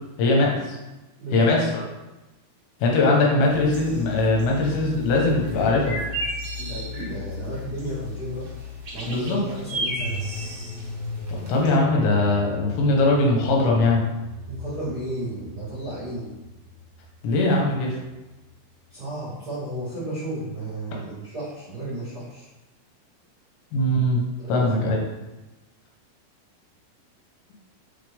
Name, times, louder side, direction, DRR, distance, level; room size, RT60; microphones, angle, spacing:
voice 1, 0.2-0.8 1.3-1.7 2.8-6.0 9.1-9.4 11.4-14.0 17.2-18.0 23.7-24.2 24.5-25.0, left 2 dB, 85° left, -1 dB, 3.5 m, -21 dB
voice 2, 1.2-1.5 6.6-8.4 8.9-10.2 14.5-16.3 18.9-22.5 24.4-24.9, right 1 dB, 40° right, -10 dB, 1.4 m, -33 dB
sound 1, 3.4-11.8, left 1 dB, 70° right, 1.2 m, -34 dB
sound 2, 10.0-19.8 20.1-20.2, left 2 dB, 50° left, 3.1 m, -39 dB
5.8 x 5.8 x 3.5 m, 1.1 s
omnidirectional pair, 5.0 m